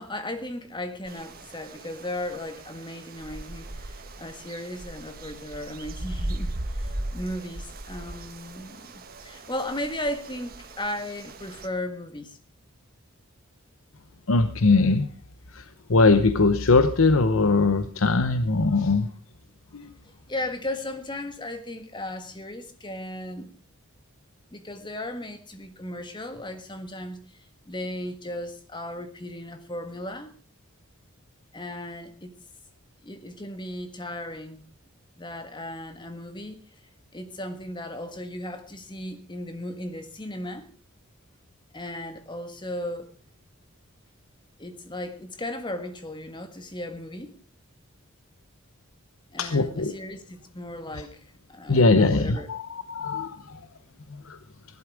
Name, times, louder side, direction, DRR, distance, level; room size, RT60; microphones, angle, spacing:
voice 1, 0.0-12.4 18.9-19.1 20.0-23.5 24.5-30.3 31.5-32.3 33.0-34.6 35.2-36.6 37.1-40.7 41.7-43.1 44.6-47.3 49.3-51.2 51.5-52.5, left 1 dB, 20° left, 1.7 m, -36 dB
sound 1, 1.1-11.7, right 1 dB, 45° right, 1.4 m, -38 dB
voice 2, 14.3-15.1 15.5-19.1 19.7-19.9 49.4-50.0 50.9-51.1 51.7-53.7 54.1-54.4, left 3 dB, 70° left, 0.8 m, -21 dB
17.0 x 11.5 x 4.9 m
head